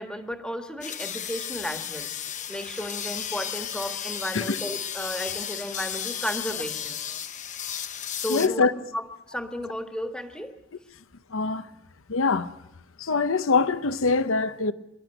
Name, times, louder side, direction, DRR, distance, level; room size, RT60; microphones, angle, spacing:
voice 1, 0.0-2.1 2.5-7.0 8.2-8.7 8.9-10.5, equal, 5° left, 1.5 m, -33 dB
sound 1, 0.8-8.5, left 9 dB, 35° left, 0.8 m, -34 dB
voice 2, 8.3-8.7 11.3-11.7 12.1-12.5 13.0-14.7, left 4 dB, 70° left, 0.8 m, -23 dB
26.0 x 12.0 x 9.0 m
head